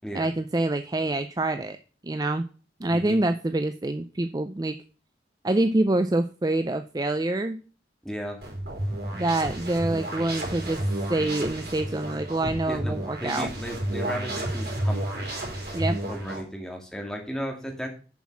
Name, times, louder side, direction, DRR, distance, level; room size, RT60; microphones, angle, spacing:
voice 1, 0.1-1.8 2.0-2.4 2.8-4.8 5.4-7.6 9.1-13.5 15.7-16.0, right 2 dB, 20° right, 9 dB, 0.4 m, -26 dB
voice 2, 2.9-3.2 8.0-8.4 12.7-15.3 16.1-17.9, equal, 5° left, 1 dB, 2.0 m, -35 dB
sound 1, 8.4-16.4, right 1 dB, 60° right, 4.2 m, -31 dB
7.1 x 6.2 x 7.3 m, 0.38 s
head